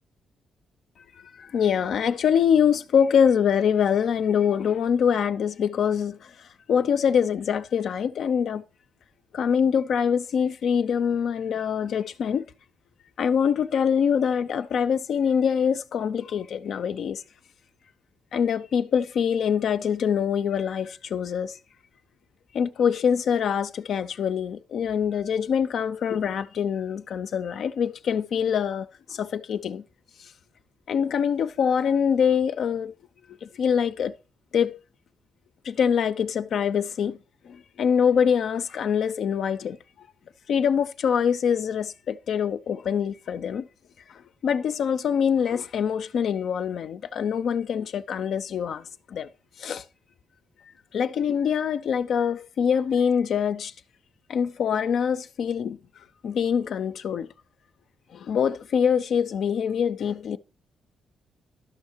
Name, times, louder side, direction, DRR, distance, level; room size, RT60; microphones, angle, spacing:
voice 1, 1.2-8.6 9.3-12.5 13.2-17.2 18.3-21.6 22.5-29.8 30.2-30.3 30.9-32.9 33.3-34.2 34.5-34.8 35.6-37.2 37.4-40.1 40.5-43.7 44.1-49.3 49.6-49.8 50.9-53.7 54.3-57.3 58.1-60.4, left 7 dB, 65° left, 0.4 m, -24 dB
12.0 x 5.6 x 4.4 m
cardioid pair, 110°, 0 cm